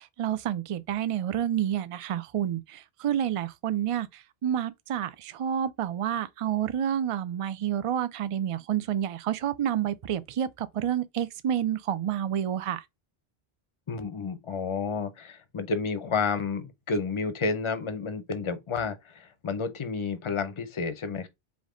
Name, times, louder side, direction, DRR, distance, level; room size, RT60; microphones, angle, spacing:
voice 1, 0.0-12.8, right 10 dB, 55° right, 0.3 m, -29 dB
voice 2, 13.9-21.3, left 4 dB, 35° left, 0.6 m, -31 dB
5.1 x 2.5 x 3.7 m
omnidirectional pair, 1.0 m